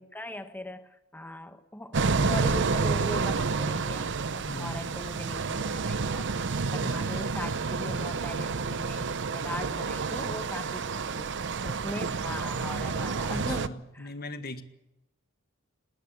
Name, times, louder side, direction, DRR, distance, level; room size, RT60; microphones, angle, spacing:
voice 1, 0.0-6.3 6.7-11.3 11.6-14.1, left 1 dB, 10° left, 9 dB, 1.3 m, -40 dB
sound 1, 1.9-13.7, right 4 dB, 60° right, 0.8 m, -29 dB
voice 2, 4.5-4.8 6.8-7.2 12.5-12.9 13.3-14.6, left 1 dB, 50° left, 9 dB, 1.6 m, -40 dB
20.0 x 18.5 x 8.3 m, 0.91 s
head